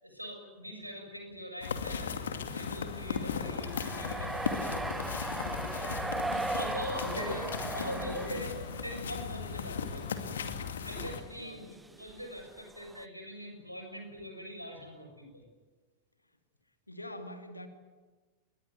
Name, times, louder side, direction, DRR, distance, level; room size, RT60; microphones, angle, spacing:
voice 1, 0.0-5.1 5.7-10.0 10.6-15.5, equal, 90° right, 4 dB, 6.9 m, -43 dB
sound 1, 1.6-11.2, left 6 dB, 65° left, 2.4 m, -37 dB
sound 2, 2.6-9.2 9.5-10.1 10.5-10.6 11.0-11.2 11.8-13.1, right 2 dB, 10° right, 1.0 m, -38 dB
voice 2, 7.0-8.5 9.4-9.6 11.4-11.7 16.9-17.7, left 1 dB, 85° left, 7 dB, 2.5 m, -43 dB
27.5 x 22.0 x 9.5 m, 1.3 s
figure-of-eight pair, 90°, 0 cm